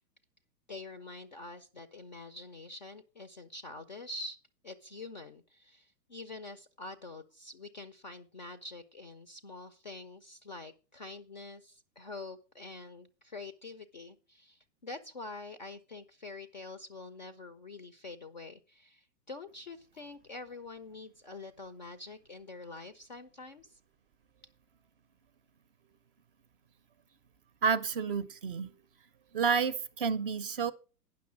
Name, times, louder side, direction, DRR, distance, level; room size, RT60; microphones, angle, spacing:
voice 1, 0.7-4.4 4.6-23.8, left 3 dB, 30° left, 0.4 m, -46 dB
voice 2, 27.6-28.7 29.3-30.7, right 6 dB, 35° right, 0.5 m, -30 dB
9.4 x 6.2 x 6.0 m
hypercardioid pair, 135°, 49 cm